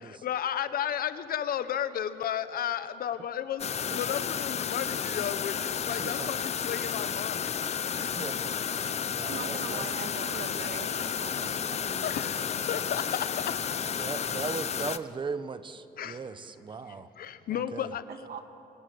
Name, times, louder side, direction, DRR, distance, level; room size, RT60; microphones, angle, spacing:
voice 1, 0.0-3.7 3.9-7.6 12.0-13.6 16.0-16.2 16.9-18.0, left 9 dB, 55° left, 12 dB, 1.3 m, -33 dB
sound 1, 3.6-15.0, left 8 dB, 35° left, 0.8 m, -32 dB
voice 2, 6.0-6.3 7.7-8.6 9.0-9.9 14.0-17.1 17.5-17.9, right 5 dB, 30° right, 13 dB, 1.0 m, -38 dB
voice 3, 9.3-12.4 18.1-18.4, right 7 dB, 60° right, 7 dB, 2.1 m, -42 dB
28.0 x 24.5 x 8.0 m, 2.9 s
cardioid pair, 150°, 18 cm